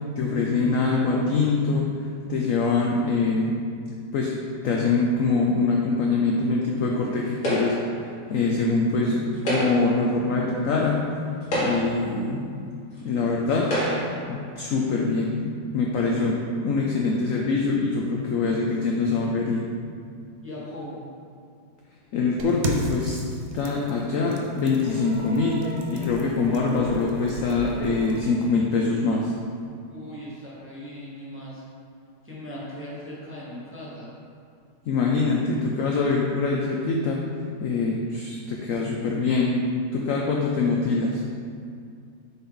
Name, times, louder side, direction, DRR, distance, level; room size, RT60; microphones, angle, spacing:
voice 1, 0.2-1.9 2.3-3.5 4.1-4.3 4.6-7.8 8.3-11.0 11.5-12.4 13.0-13.7 14.3-15.5 15.7-19.7 22.1-23.2 23.5-25.6 25.9-29.3 34.9-37.2 37.6-39.6 39.9-41.2, left 4 dB, 70° left, -1 dB, 0.8 m, -24 dB
sound 1, 7.4-8.0 9.3-10.0 10.8-10.9 11.4-12.1 13.0-13.1 13.6-14.2, right 1 dB, 50° left, 2.0 m, -27 dB
voice 2, 20.4-21.0 29.9-31.6 32.2-34.1, equal, 10° right, -7 dB, 0.8 m, -38 dB
sound 2, 22.4-28.2, right 2 dB, 70° right, 0.6 m, -36 dB
sound 3, 24.7-28.3 29.6-29.7, equal, 45° right, 1.9 m, -41 dB
6.9 x 4.3 x 3.8 m, 2.3 s
omnidirectional pair, 1.9 m